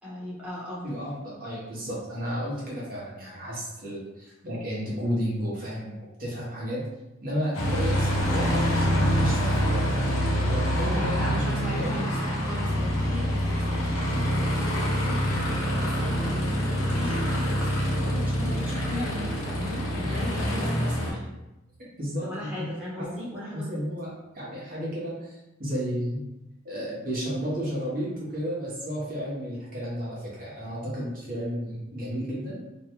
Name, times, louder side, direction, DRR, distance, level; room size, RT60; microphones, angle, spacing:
voice 1, 0.0-0.9 11.1-21.2 22.2-23.8, left 1 dB, 5° right, -10 dB, 0.9 m, -37 dB
voice 2, 0.8-5.9 6.2-6.8 7.2-9.8 10.4-11.4 11.7-12.0 13.2-13.3 20.0-20.2 20.5-20.8 22.0-22.6 23.0-23.2 23.5-26.2 26.6-32.6, equal, 45° right, -6 dB, 0.8 m, -32 dB
Aircraft, 7.5-21.1, equal, 80° left, 0.7 m, -26 dB
2.6 x 2.2 x 2.9 m, 0.94 s
head